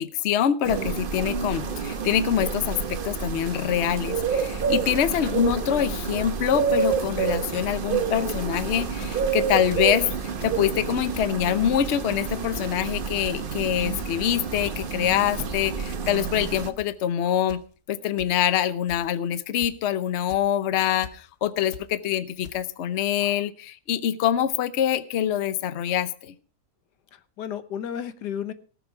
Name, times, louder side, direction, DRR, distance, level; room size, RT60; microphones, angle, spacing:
voice 1, 0.0-10.1 10.4-17.6 17.9-26.3, left 10 dB, 55° left, 14 dB, 0.9 m, -25 dB
sound 1, 0.6-16.7, right 6 dB, 40° right, 0.9 m, -29 dB
voice 2, 4.4-4.8 27.1-28.5, left 9 dB, 85° left, 12 dB, 1.5 m, -34 dB
sound 2, 5.5-5.6 6.2-6.3 6.9-7.1 7.3-7.4 7.6-7.8 8.3-8.5 8.9-9.2 9.5-9.9 10.3-10.6 11.1-11.4 11.8-12.1 12.5-12.8 13.2-13.4 13.7-14.1 14.6-15.0 15.3-15.6 16.1-16.2 16.5-16.9 17.5-17.6 18.2-18.3 18.9-19.2 19.6-19.9 20.3-20.4 21.0-21.1 21.7-21.9 22.4-22.5, left 7 dB, 70° left, 1.5 m, -42 dB
18.5 x 7.2 x 4.7 m, 0.40 s
omnidirectional pair, 1.7 m